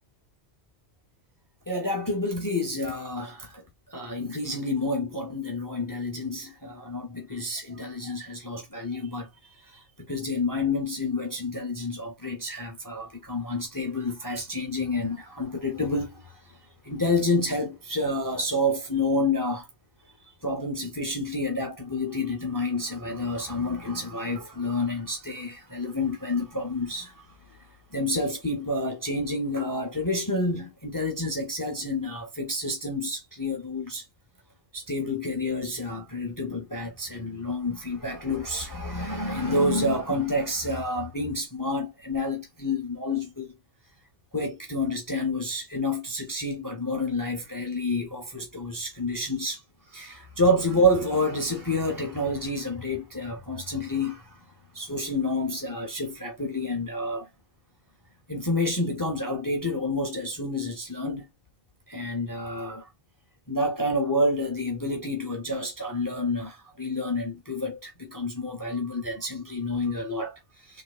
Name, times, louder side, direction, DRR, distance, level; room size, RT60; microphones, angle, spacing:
voice 1, 1.7-16.6 16.8-19.7 20.4-27.6 27.9-34.0 34.7-43.5 44.3-49.6 49.9-54.4 54.7-57.3 58.3-61.3 61.9-62.9 63.5-70.8, left 2 dB, 20° left, 0.6 m, -29 dB
3.3 x 3.1 x 2.3 m
omnidirectional pair, 1.1 m